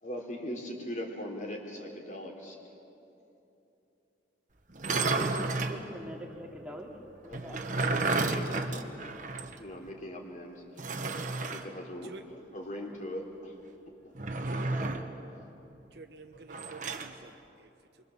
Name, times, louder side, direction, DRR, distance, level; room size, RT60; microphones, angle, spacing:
voice 1, 0.0-2.6 7.3-9.0 9.6-10.6 11.4-12.1 12.5-13.6 14.0-14.1, equal, 40° left, 1 dB, 3.7 m, -40 dB
sound 1, 4.7-5.8 7.3-9.6 9.9-10.0 10.8-11.7 14.2-15.1 16.5-17.1, right 3 dB, 45° right, 1.4 m, -31 dB
voice 2, 5.0-6.9 7.2-7.6 14.5-15.4, equal, 5° right, -1 dB, 2.8 m, -44 dB
voice 3, 15.9-18.0, right 2 dB, 60° right, 5 dB, 1.0 m, -49 dB
29.0 x 23.5 x 7.3 m, 2.9 s
head